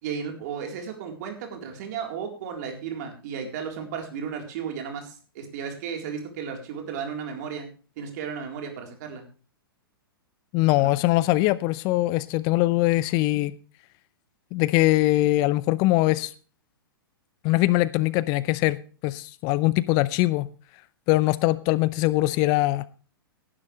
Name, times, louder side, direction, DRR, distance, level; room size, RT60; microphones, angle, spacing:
voice 1, 0.0-7.7 8.0-9.2 10.8-10.9, right 7 dB, 45° right, 3 dB, 4.0 m, -34 dB
voice 2, 10.5-13.5 14.5-16.3 17.4-20.5 21.1-22.9, left 18 dB, 35° left, 18 dB, 0.6 m, -22 dB
18.0 x 11.0 x 3.3 m, 0.38 s
figure-of-eight pair, 110°, 12 cm